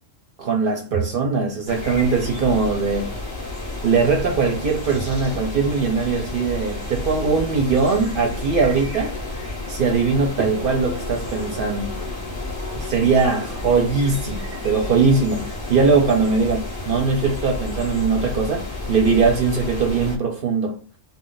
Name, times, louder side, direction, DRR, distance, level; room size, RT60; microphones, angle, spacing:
voice 1, 0.4-3.1 3.8-9.1 9.7-11.9 12.8-20.8, right 4 dB, 55° right, 0.6 m, -21 dB
sound 1, 1.7-20.2, left 2 dB, 25° left, 0.6 m, -31 dB
2.4 x 2.0 x 3.8 m
omnidirectional pair, 1.3 m